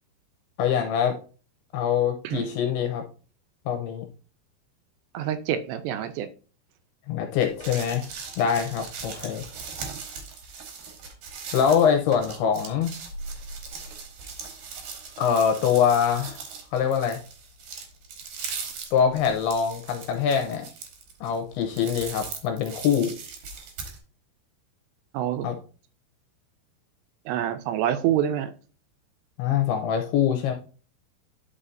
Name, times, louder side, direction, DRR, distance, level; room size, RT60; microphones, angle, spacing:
voice 1, 0.6-1.2 1.7-3.0 3.7-4.1 7.1-8.1 8.4-9.4 11.5-12.9 15.2-16.4 16.7-17.2 18.9-20.7 21.2-23.1 25.4-25.6 29.4-30.5, left 8 dB, 85° left, 4 dB, 2.4 m, -24 dB
voice 2, 5.1-6.3 25.1-25.5 27.3-28.5, right 10 dB, 80° right, 10 dB, 2.7 m, -26 dB
sound 1, 7.4-24.0, right 5 dB, 65° right, 2.4 m, -39 dB
9.8 x 5.6 x 2.5 m, 0.37 s
omnidirectional pair, 5.1 m